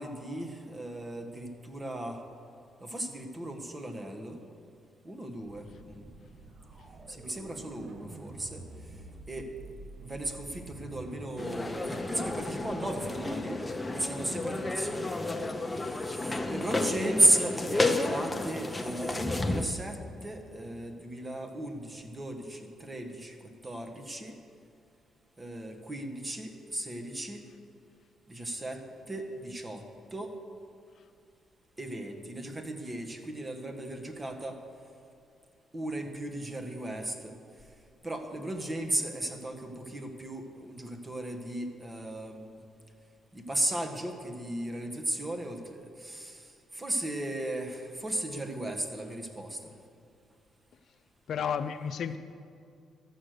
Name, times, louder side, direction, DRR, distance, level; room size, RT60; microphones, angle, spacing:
voice 1, 0.0-2.2 2.8-4.4 5.0-6.1 7.1-8.6 9.3-9.5 10.0-15.5 15.8-24.4 25.4-27.4 28.3-29.8 30.1-30.3 31.8-34.6 35.7-37.3 38.0-42.6 43.3-49.7, right 1 dB, 20° right, 5 dB, 1.5 m, -35 dB
sound 1, 5.4-13.0, right 2 dB, 50° right, 1.2 m, -48 dB
sound 2, 11.4-19.6, left 2 dB, 15° left, 0.8 m, -32 dB
voice 2, 51.3-52.2, left 7 dB, 60° left, 10 dB, 0.5 m, -32 dB
13.5 x 7.8 x 6.6 m, 2.3 s
cardioid pair, 90°, 0 cm